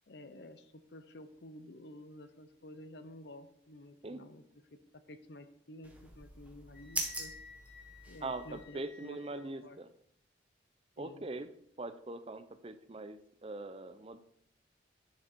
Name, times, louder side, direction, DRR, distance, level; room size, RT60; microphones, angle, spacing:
voice 1, 0.1-4.4 4.7-7.3 8.1-9.8 11.0-11.3, left 1 dB, 60° left, 11 dB, 0.8 m, -51 dB
sound 1, 5.8-8.6, right 2 dB, 5° right, 1.3 m, -42 dB
Wind instrument woodwind instrument, 6.7-9.5, left 5 dB, 80° left, 3.8 m, -55 dB
voice 2, 8.2-9.9 11.0-11.5 11.8-14.2, right 2 dB, 30° right, 11 dB, 0.5 m, -42 dB
10.5 x 6.3 x 4.4 m, 0.69 s
head